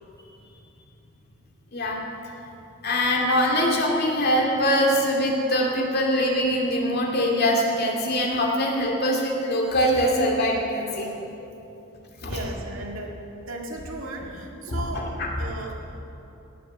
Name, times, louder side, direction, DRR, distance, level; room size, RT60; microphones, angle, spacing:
voice 1, 2.8-11.1 12.2-12.3 14.7-15.3, equal, 50° left, -1 dB, 2.3 m, -23 dB
voice 2, 12.2-13.2 13.5-15.1 15.4-15.8, right 2 dB, 85° right, 0 dB, 1.9 m, -35 dB
17.5 x 7.1 x 7.6 m, 2.9 s
head